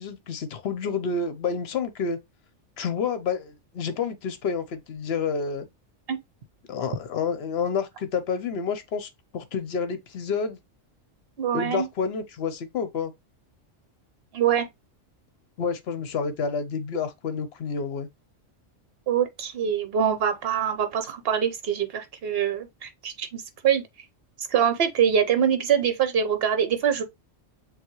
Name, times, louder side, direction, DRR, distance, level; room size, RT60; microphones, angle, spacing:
voice 1, 0.0-2.2 2.8-5.7 6.7-10.6 11.5-13.1 15.6-18.1, left 5 dB, 60° left, 0.9 m, -29 dB
voice 2, 11.4-11.9 14.3-14.7 19.1-23.8 24.5-27.0, right 8 dB, 55° right, 1.0 m, -24 dB
7.0 x 2.4 x 3.0 m
omnidirectional pair, 1.3 m